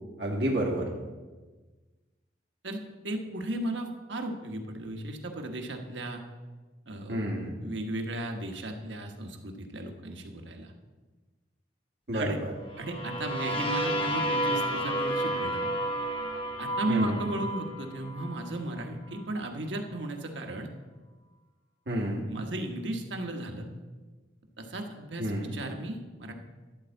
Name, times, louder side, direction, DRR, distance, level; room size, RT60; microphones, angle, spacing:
voice 1, 0.2-0.9 7.1-7.5 12.1-12.5 16.9-17.2 21.9-22.3 25.2-25.5, right 1 dB, 65° right, -2 dB, 1.9 m, -29 dB
voice 2, 2.6-6.2 6.9-7.2 7.6-10.7 12.1-12.4 12.8-15.6 16.6-20.7 22.3-23.7 24.6-26.3, right 1 dB, 85° right, 4 dB, 1.2 m, -35 dB
sound 1, 12.7-18.5, right 1 dB, 30° left, 1.0 m, -31 dB
11.5 x 4.4 x 7.7 m, 1.3 s
head